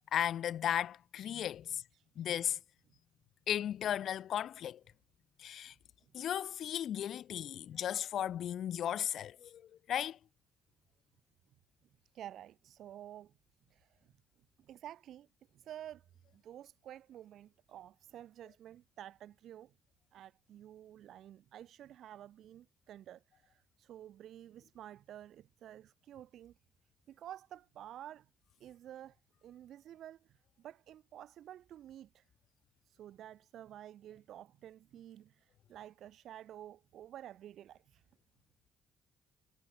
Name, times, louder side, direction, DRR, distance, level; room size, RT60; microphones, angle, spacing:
voice 1, 0.1-1.8 2.2-2.6 3.5-4.8 5.4-5.7 6.1-9.6 9.9-10.2, left 10 dB, 70° left, 0.6 m, -35 dB
voice 2, 1.6-2.3 12.0-13.3 13.7-14.1 14.6-19.7 20.1-26.5 27.1-28.3 28.6-32.3 32.8-38.0, right 11 dB, 75° right, 2.2 m, -51 dB
cardioid pair, 90°, 0 cm